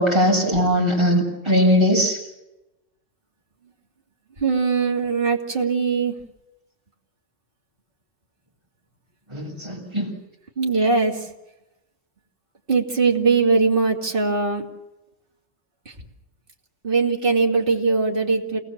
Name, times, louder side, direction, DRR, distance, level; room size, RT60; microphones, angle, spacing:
voice 1, 0.0-2.2 9.3-10.1, equal, 20° right, -3 dB, 7.2 m, -20 dB
voice 2, 4.4-6.2 10.6-11.3 12.7-14.6 15.9-16.0 16.8-18.6, right 4 dB, 45° right, 1 dB, 2.9 m, -21 dB
29.0 x 19.5 x 7.5 m, 0.97 s
omnidirectional pair, 1.2 m